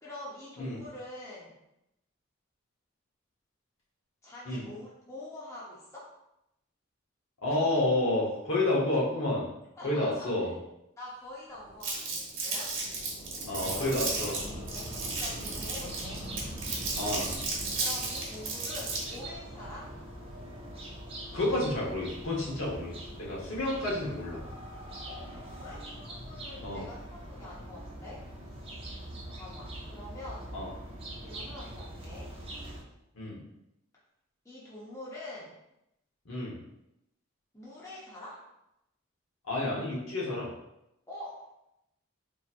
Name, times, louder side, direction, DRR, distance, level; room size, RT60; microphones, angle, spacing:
voice 1, 0.0-1.5 4.2-6.1 9.8-10.3 11.0-12.7 13.5-16.3 17.8-19.9 23.9-24.0 25.1-28.2 28.7-28.8 29.3-30.5 31.2-32.3 34.4-35.5 37.5-38.4 41.1-41.5, left 1 dB, 15° left, -7 dB, 0.7 m, -45 dB
voice 2, 7.4-9.4 9.8-10.5 13.5-14.3 17.0-17.3 21.3-24.4 26.6-26.8 30.5-30.7 33.1-33.4 36.2-36.5 39.4-40.5, left 2 dB, 70° left, -4 dB, 1.1 m, -30 dB
Thunder / Rain, 11.5-20.5 21.2-21.3 22.2-23.5 25.0-25.8, equal, 35° left, 0.9 m, -46 dB
Crumpling crinkling, 11.8-19.2, right 3 dB, 55° right, 1.0 m, -34 dB
sound 1, 13.5-32.8, right 1 dB, 25° right, 0.6 m, -43 dB
4.2 x 3.0 x 2.5 m, 0.86 s
head